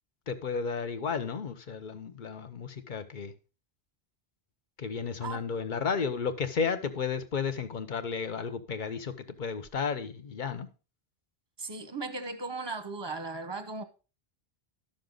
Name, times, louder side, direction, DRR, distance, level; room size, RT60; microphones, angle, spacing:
voice 1, 0.3-3.3 4.8-9.1 9.4-10.7, left 5 dB, 50° left, 1.0 m, -33 dB
voice 2, 11.6-13.8, right 3 dB, 25° right, 0.9 m, -37 dB
12.0 x 6.6 x 3.8 m
omnidirectional pair, 1.0 m